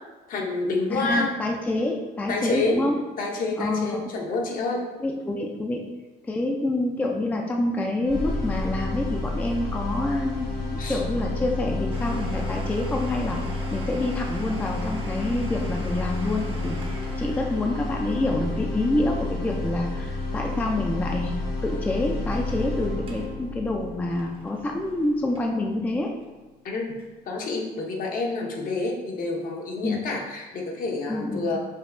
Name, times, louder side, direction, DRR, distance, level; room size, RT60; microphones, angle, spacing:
voice 1, 0.3-1.3 2.3-2.8 3.2-4.9 10.8-11.0 26.6-26.9 27.3-31.6, left 3 dB, 55° left, 0 dB, 0.8 m, -28 dB
voice 2, 0.9-3.0 3.6-4.0 5.0-5.8 6.2-16.8 17.2-21.3 21.6-26.1 29.8-30.0 31.1-31.5, left 2 dB, 10° left, 1 dB, 0.4 m, -27 dB
sound 1, 8.0-26.1, left 2 dB, 90° left, 1.0 m, -31 dB
Domestic sounds home sounds, 11.9-21.4 21.6-21.7 22.3-22.6 23.0-23.3 23.7-25.7 26.2-26.3 27.0-27.1, right 2 dB, 35° right, 0.7 m, -45 dB
5.3 x 2.8 x 2.5 m, 1.2 s
cardioid pair, 110°, 17 cm